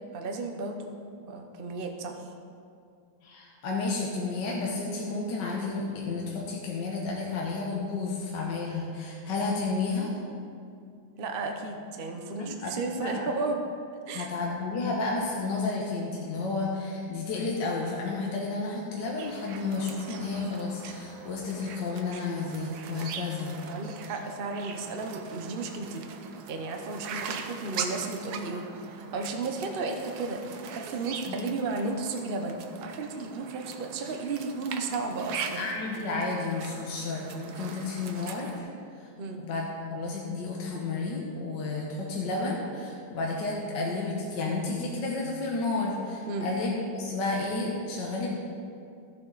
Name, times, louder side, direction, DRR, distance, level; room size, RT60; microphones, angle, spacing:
voice 1, 0.1-1.0 1.3-2.2 11.2-13.6 14.1-14.3 23.7-26.0 26.5-35.7 39.2-39.4 46.3-46.5, right 3 dB, 80° right, 4 dB, 0.5 m, -34 dB
voice 2, 3.2-10.1 12.4-13.3 14.1-23.5 31.3-31.4 35.5-38.7 39.0-39.1 39.4-48.3, left 3 dB, 65° left, -2 dB, 1.7 m, -31 dB
sound 1, 19.2-38.6, right 6 dB, 65° right, 1.1 m, -41 dB
15.0 x 7.4 x 4.0 m, 2.4 s
omnidirectional pair, 2.2 m